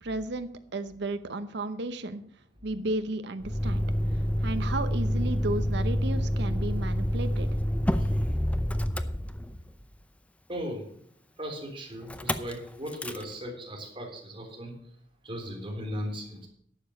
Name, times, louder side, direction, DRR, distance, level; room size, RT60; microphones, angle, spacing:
voice 1, 0.0-2.2 2.6-3.8 4.4-7.5, right 2 dB, 65° right, 10 dB, 0.8 m, -33 dB
Motor vehicle (road), 3.4-9.8 12.1-12.5 12.9-13.2, equal, 5° left, 0.6 m, -28 dB
voice 2, 8.0-8.4 10.5-10.8 11.4-14.7 15.2-16.4, equal, 30° right, 0 dB, 3.6 m, -37 dB
11.5 x 7.0 x 6.4 m, 0.64 s
head